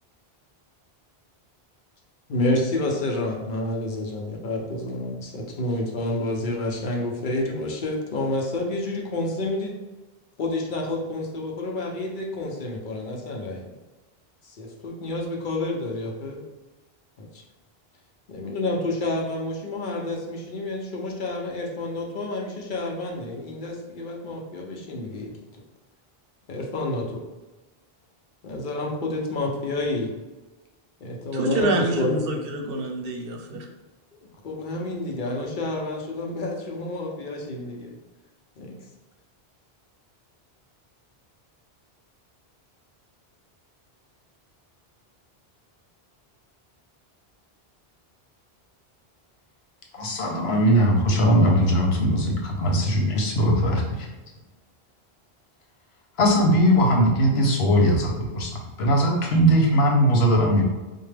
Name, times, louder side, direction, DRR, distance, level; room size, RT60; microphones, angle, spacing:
voice 1, 2.3-9.8 10.4-13.7 14.4-16.4 17.2-17.4 18.3-25.3 26.5-27.2 28.4-30.1 31.0-32.2 34.4-37.9 38.6-38.8, left 2 dB, 55° left, 0 dB, 0.8 m, -29 dB
voice 2, 31.3-33.7, right 2 dB, 70° right, 3 dB, 0.8 m, -27 dB
voice 3, 49.9-54.1 56.2-58.5 58.8-60.6, equal, 85° left, 0 dB, 1.0 m, -20 dB
4.4 x 2.2 x 3.3 m, 1.1 s
omnidirectional pair, 1.0 m